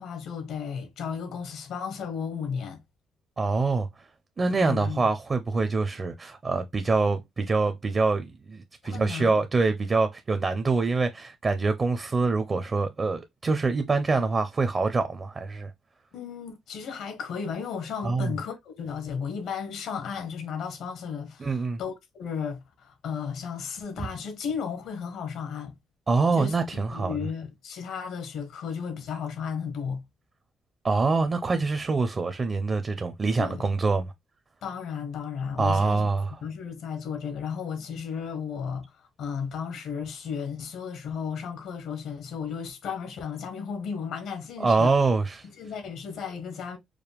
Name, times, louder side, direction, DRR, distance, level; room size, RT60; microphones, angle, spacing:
voice 1, 0.0-2.8 4.5-5.0 8.8-9.4 16.1-25.7 26.3-30.0 33.4-33.7 34.6-36.1 36.4-38.9 39.2-44.9 45.6-46.8, left 6 dB, 80° left, 1.2 m, -34 dB
voice 2, 3.4-3.9 4.4-15.7 18.0-18.3 21.4-21.8 26.1-27.2 30.8-34.1 35.6-36.4 44.6-45.5, right 3 dB, 35° right, 0.6 m, -25 dB
4.9 x 2.2 x 3.4 m
cardioid pair, 90°, 0 cm